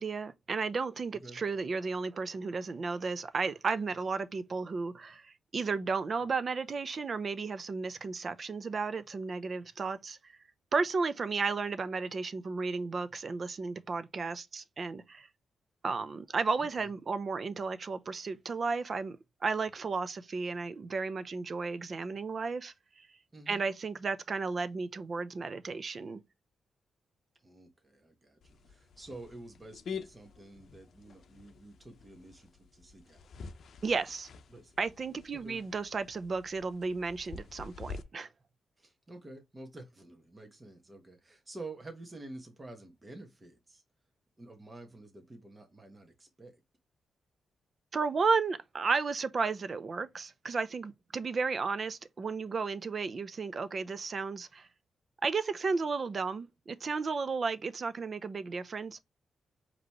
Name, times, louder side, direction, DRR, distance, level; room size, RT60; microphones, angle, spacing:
voice 1, 0.0-10.4 10.7-15.3 15.8-19.2 19.4-23.1 23.5-26.2 33.8-34.3 34.8-38.3 47.9-54.7 55.2-59.0, right 4 dB, 45° right, 0.6 m, -33 dB
voice 2, 23.3-23.7 27.4-33.2 34.5-34.7 35.3-35.6 38.8-43.8 44.4-46.6, right 2 dB, 20° right, 1.3 m, -49 dB
sound 1, 28.4-38.0, left 5 dB, 65° left, 0.6 m, -48 dB
5.1 x 3.0 x 2.9 m
cardioid pair, 95°, 0 cm